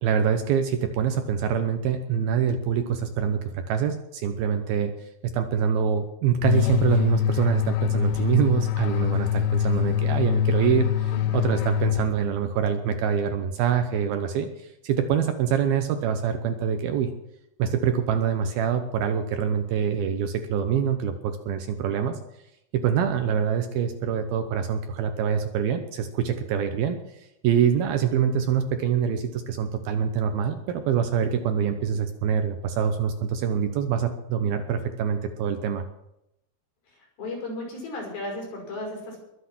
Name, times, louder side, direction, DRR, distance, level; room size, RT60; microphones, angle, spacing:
voice 1, 0.0-5.1 5.3-17.1 17.6-22.2 22.7-35.9, right 7 dB, 75° right, 7 dB, 2.5 m, -25 dB
sound 1, 6.4-12.5, left 12 dB, 90° left, 2.9 m, -24 dB
voice 2, 37.2-39.2, left 2 dB, 60° left, 0 dB, 7.5 m, -34 dB
21.5 x 8.1 x 6.1 m, 0.85 s
omnidirectional pair, 4.9 m